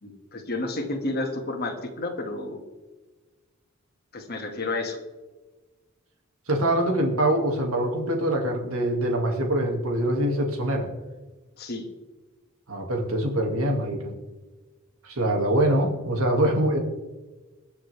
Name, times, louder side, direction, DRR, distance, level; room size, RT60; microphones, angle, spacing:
voice 1, 0.0-2.6 4.1-5.0 11.6-11.9, left 2 dB, 45° left, 2 dB, 2.3 m, -31 dB
voice 2, 6.5-10.9 12.7-14.2 15.0-16.8, right 1 dB, 80° right, 2 dB, 2.6 m, -24 dB
22.5 x 7.9 x 3.6 m, 1.2 s
head